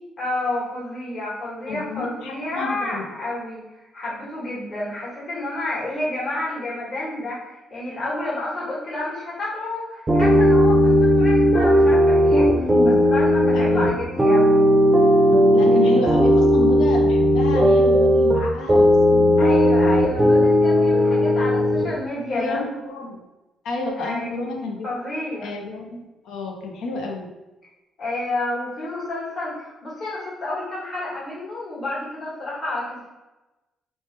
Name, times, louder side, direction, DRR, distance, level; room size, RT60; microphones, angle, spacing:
voice 1, 0.2-3.6 3.9-14.6 19.4-22.6 24.0-24.4 24.8-25.5 28.0-33.1, left 2 dB, 45° left, -8 dB, 1.4 m, -30 dB
voice 2, 1.6-3.1 12.5-13.0 13.5-13.9 15.5-19.5 21.1-21.2 22.3-23.2 23.6-24.9 25.4-27.3, left 2 dB, 85° left, 1 dB, 0.5 m, -30 dB
sound 1, 10.1-21.9, equal, 20° right, 0.5 m, -16 dB
3.1 x 2.1 x 3.2 m, 1.0 s
cardioid pair, 90°, 0 cm